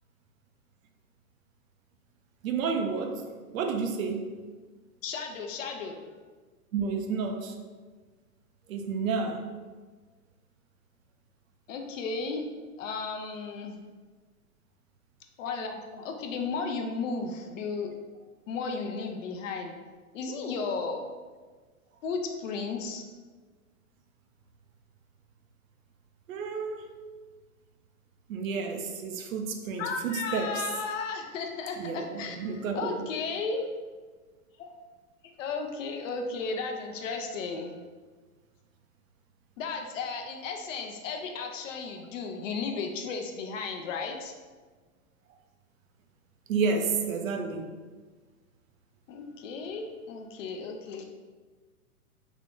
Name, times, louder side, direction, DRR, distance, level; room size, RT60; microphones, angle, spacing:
voice 1, 2.4-3.2 3.5-4.3 6.7-7.6 8.7-9.4 26.3-26.9 28.3-30.6 31.8-32.9 46.5-47.7, right 5 dB, 65° right, 5 dB, 0.6 m, -30 dB
voice 2, 5.0-6.0 11.7-12.4 12.8-13.8 15.4-17.9 18.5-19.7 20.1-21.0 22.0-23.0 29.8-33.7 34.6-34.7 35.4-37.8 39.6-44.3 49.1-51.0, left 4 dB, 60° left, 4 dB, 0.6 m, -34 dB
3.6 x 2.4 x 3.6 m, 1.4 s
hypercardioid pair, 140°, 44 cm